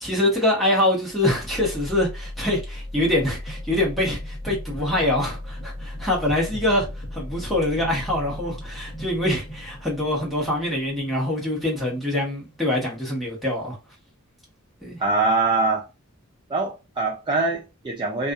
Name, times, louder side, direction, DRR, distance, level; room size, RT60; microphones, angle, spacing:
voice 1, 0.0-13.8 14.8-15.0, left 1 dB, ahead, 1.1 m, -24 dB
sound 1, 1.1-13.0, left 1 dB, 25° left, 0.7 m, -36 dB
voice 2, 15.0-15.8 16.5-18.3, right 3 dB, 20° right, 0.4 m, -23 dB
2.5 x 2.4 x 2.3 m
head